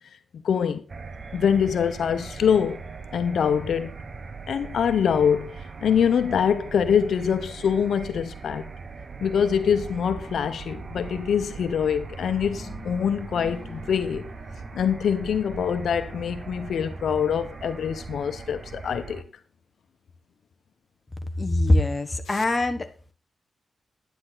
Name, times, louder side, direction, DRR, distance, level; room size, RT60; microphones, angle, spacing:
voice 1, 0.4-0.8 1.3-2.8 3.1-3.9 4.5-8.7 9.2-14.3 14.7-19.2 22.3-22.4, left 7 dB, 80° left, 1.0 m, -24 dB
sound 1, 0.9-19.2, right 4 dB, 40° right, 1.1 m, -39 dB
sound 2, 12.6-18.5, left 3 dB, 5° left, 5.0 m, -48 dB
voice 2, 21.4-22.9, left 1 dB, 25° left, 1.3 m, -22 dB
10.5 x 10.5 x 4.0 m
wide cardioid pair, 115°, 0 cm